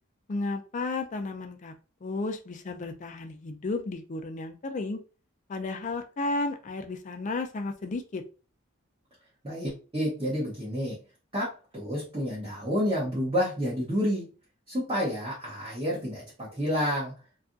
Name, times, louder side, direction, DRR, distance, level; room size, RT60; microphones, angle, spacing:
voice 1, 0.3-1.7 2.0-5.0 5.5-8.2, left 3 dB, 35° left, 6 dB, 0.4 m, -33 dB
voice 2, 9.4-11.0 11.3-14.3 14.7-17.1, equal, 25° right, -6 dB, 0.9 m, -29 dB
2.7 x 2.4 x 2.5 m, 0.34 s
head